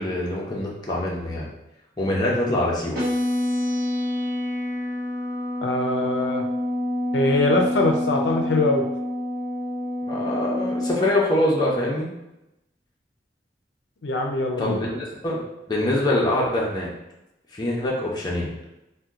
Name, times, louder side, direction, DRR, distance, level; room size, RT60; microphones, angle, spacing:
voice 1, 0.0-1.5 2.0-3.0 10.1-12.1 14.6-15.4 15.7-16.9 17.5-18.5, left 1 dB, 25° left, -4 dB, 0.6 m, -24 dB
sound 1, 2.9-11.0, left 1 dB, 55° right, 1.0 m, -27 dB
voice 2, 5.6-6.4 7.1-8.9 14.0-14.8, left 2 dB, 85° left, 2 dB, 0.4 m, -22 dB
2.8 x 2.2 x 3.6 m, 0.92 s
head